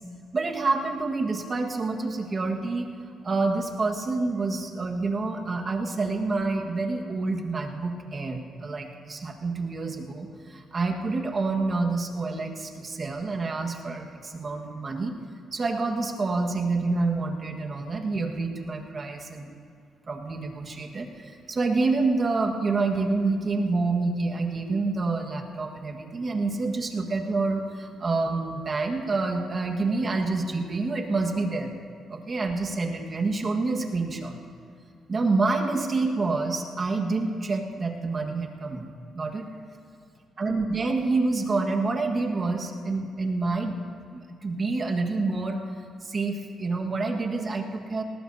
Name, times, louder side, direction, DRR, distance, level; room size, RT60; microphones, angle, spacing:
voice 1, 0.3-2.9 3.2-15.2 15.5-19.5 20.1-31.7 32.1-34.4 35.1-38.9 39.1-39.5 40.4-45.6 46.0-48.0, right 3 dB, 35° right, 2 dB, 1.6 m, -28 dB
19.5 x 19.0 x 2.8 m, 2.2 s
cardioid pair, 90°, 0 cm